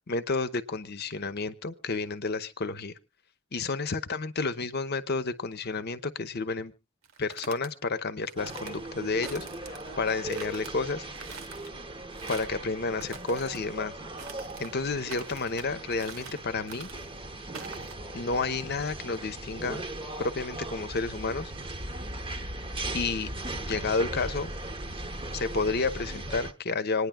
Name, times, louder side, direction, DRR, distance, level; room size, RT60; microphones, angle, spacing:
voice 1, 0.1-2.9 3.5-6.7 7.2-11.0 12.3-13.9 14.6-16.9 18.1-19.8 20.2-21.5 22.9-23.3 23.7-24.5 25.3-27.1, left 3 dB, 50° left, 11 dB, 0.8 m, -31 dB
sound 1, 7.0-7.7 8.3-8.8 9.2-9.9 10.3-10.7 11.1-11.7 12.1-12.6 13.0-13.6 14.2-14.7 15.1-15.7 16.0-16.4 16.7-17.1 17.5-17.9, right 6 dB, 80° right, 1.0 m, -44 dB
sound 2, 8.4-26.5, right 1 dB, 25° right, 0.9 m, -38 dB
27.0 x 9.8 x 2.2 m, 0.27 s
head